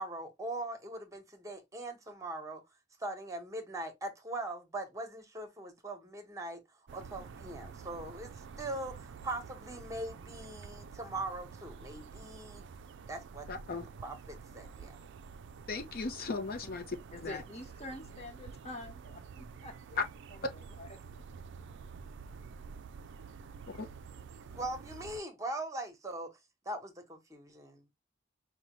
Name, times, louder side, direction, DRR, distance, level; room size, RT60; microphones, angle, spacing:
voice 1, 0.0-2.6 3.0-6.6 6.9-12.7 13.1-13.5 14.0-15.0 24.5-26.4 26.6-27.8, right 2 dB, 15° right, 1.0 m, -41 dB
sound 1, 6.9-25.2, right 5 dB, 65° right, 0.4 m, -49 dB
voice 2, 13.5-13.8 15.7-17.0 17.2-17.4 20.0-20.1 23.7-23.9, left 4 dB, 50° left, 0.7 m, -36 dB
voice 3, 17.1-20.0 20.5-20.9, left 1 dB, 35° left, 1.3 m, -46 dB
5.4 x 2.2 x 3.0 m
head